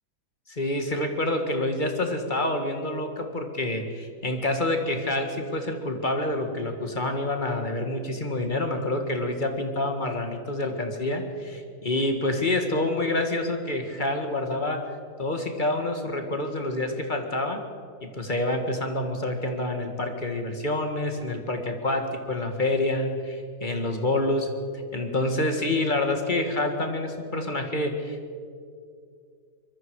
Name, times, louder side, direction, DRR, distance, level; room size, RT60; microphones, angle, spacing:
voice 1, 0.5-14.8 15.2-17.6 18.0-24.5 24.9-28.4, left 1 dB, 25° left, 4 dB, 1.9 m, -27 dB
24.5 x 22.0 x 4.9 m, 2.3 s
omnidirectional pair, 1.9 m